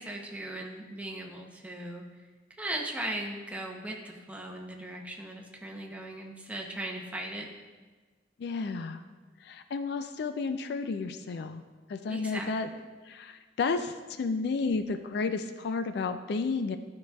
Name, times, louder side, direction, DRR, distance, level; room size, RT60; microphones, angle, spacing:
voice 1, 0.0-2.1 2.6-7.5 12.1-12.8, right 1 dB, 10° right, 0 dB, 0.7 m, -38 dB
voice 2, 8.4-9.0 9.4-11.6 11.9-12.7 13.1-16.8, left 4 dB, 65° left, 9 dB, 0.4 m, -32 dB
12.0 x 4.8 x 2.3 m, 1.4 s
head